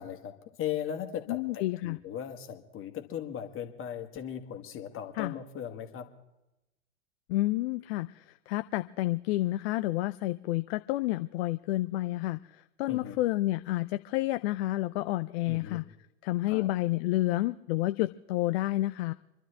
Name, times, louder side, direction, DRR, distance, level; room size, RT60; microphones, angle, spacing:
voice 1, 0.0-6.1 12.9-13.2 15.5-15.8 16.5-16.7, left 9 dB, 30° left, 5 dB, 1.9 m, -38 dB
voice 2, 1.3-2.0 5.2-5.3 7.3-15.9 16.2-19.1, left 17 dB, 50° left, 11 dB, 0.5 m, -30 dB
27.5 x 12.0 x 3.5 m, 0.93 s
hypercardioid pair, 95°, 40 cm